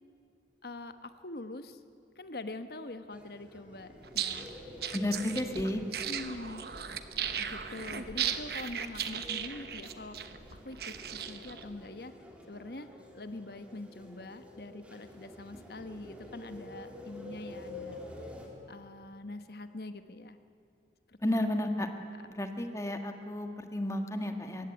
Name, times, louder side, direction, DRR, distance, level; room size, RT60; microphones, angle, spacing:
voice 1, 0.6-1.8 2.2-4.8 6.0-6.6 7.4-10.3 10.6-12.1 12.5-12.9 13.1-18.0 18.7-20.4 21.1-21.4, left 2 dB, 55° left, 10 dB, 1.1 m, -44 dB
sound 1, 3.1-18.5, left 1 dB, 5° right, 2.9 m, -49 dB
sound 2, 4.0-11.6, right 8 dB, 60° right, 1.1 m, -37 dB
voice 2, 4.9-5.8 21.2-21.9 22.4-24.7, left 1 dB, 15° left, 6 dB, 1.5 m, -32 dB
22.5 x 16.5 x 9.8 m, 2.6 s
head